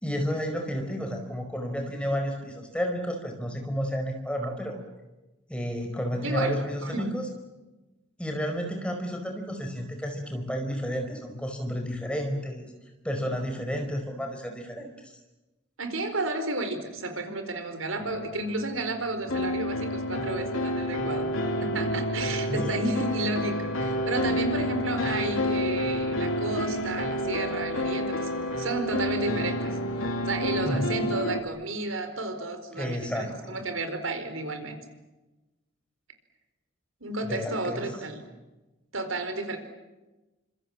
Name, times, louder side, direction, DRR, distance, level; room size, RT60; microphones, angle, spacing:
voice 1, 0.0-4.8 5.5-7.3 8.2-12.7 13.0-15.1 22.5-22.8 30.6-31.1 32.7-33.5 37.2-37.9, equal, 5° left, 4 dB, 4.9 m, -31 dB
voice 2, 6.2-6.6 6.8-7.1 15.8-21.3 21.6-29.8 30.2-34.8 37.0-38.2 38.9-39.6, right 2 dB, 75° right, 8 dB, 4.6 m, -32 dB
sound 1, 18.0-31.4, equal, 80° left, 3.2 m, -29 dB
30.0 x 26.5 x 7.5 m, 1.1 s
head